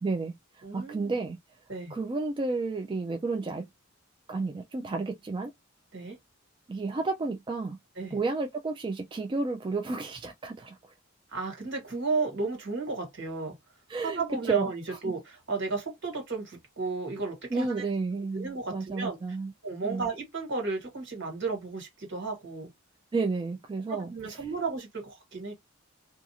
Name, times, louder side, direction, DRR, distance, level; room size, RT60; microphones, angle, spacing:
voice 1, 0.0-1.4 1.9-3.7 4.3-5.5 6.7-7.8 8.1-10.8 13.9-15.1 17.5-19.5 19.8-20.1 23.1-24.5, right 3 dB, 25° right, 0.3 m, -32 dB
voice 2, 0.6-1.1 1.7-1.9 5.9-6.2 8.0-8.1 11.3-13.5 14.2-17.8 18.3-19.2 19.6-22.7 23.9-25.5, right 3 dB, 65° right, 1.5 m, -33 dB
2.4 x 2.4 x 2.8 m
head